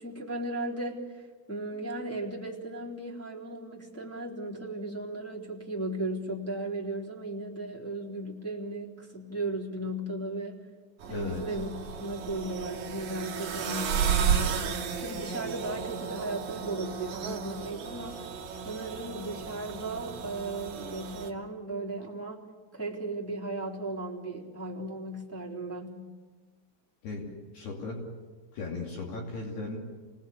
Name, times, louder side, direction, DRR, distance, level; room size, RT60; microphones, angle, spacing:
voice 1, 0.0-10.6 11.1-11.7 12.0-18.3 18.6-22.5 22.7-26.0, right 2 dB, 5° left, -5 dB, 2.4 m, -36 dB
sound 1, 11.0-21.3, right 7 dB, 55° right, 2.0 m, -33 dB
voice 2, 11.1-11.4 27.0-28.1 28.5-29.8, left 3 dB, 55° left, -1 dB, 4.6 m, -37 dB
28.5 x 19.0 x 8.4 m, 1.4 s
omnidirectional pair, 5.9 m